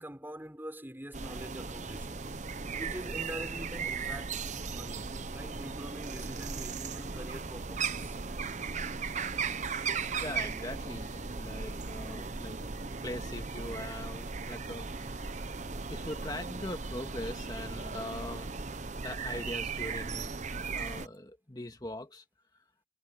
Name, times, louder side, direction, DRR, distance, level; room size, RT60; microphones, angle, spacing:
voice 1, 0.0-2.3 2.8-4.4 4.7-8.2, equal, 10° right, 5.1 m, -44 dB
sound 1, 1.1-21.1, right 5 dB, 40° right, 0.9 m, -37 dB
voice 2, 9.8-15.4 15.9-18.6 19.0-22.2, left 1 dB, 20° left, 1.9 m, -42 dB
head